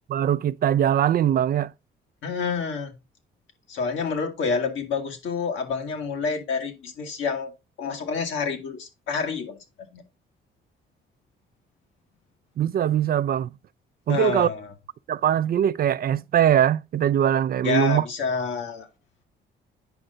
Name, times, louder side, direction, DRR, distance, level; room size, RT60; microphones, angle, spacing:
voice 1, 0.1-1.7 12.6-13.5 14.1-14.5 15.1-18.0, right 10 dB, 50° right, 0.4 m, -21 dB
voice 2, 2.2-3.0 3.7-7.5 7.8-10.0 14.1-14.7 17.6-18.9, left 5 dB, 75° left, 1.9 m, -28 dB
9.0 x 5.5 x 3.8 m
cardioid pair, 90°, 20 cm